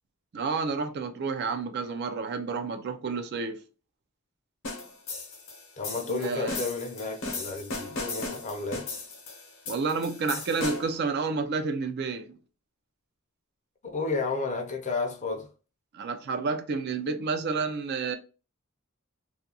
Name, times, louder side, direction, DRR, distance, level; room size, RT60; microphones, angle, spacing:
voice 1, 0.3-3.6 5.9-6.6 9.7-12.4 15.9-18.2, right 4 dB, 50° right, 0.4 m, -30 dB
sound 1, 4.6-11.0, left 3 dB, 70° left, 0.8 m, -37 dB
voice 2, 5.8-8.9 13.8-15.5, left 3 dB, 35° left, 0.5 m, -32 dB
2.4 x 2.2 x 2.7 m
head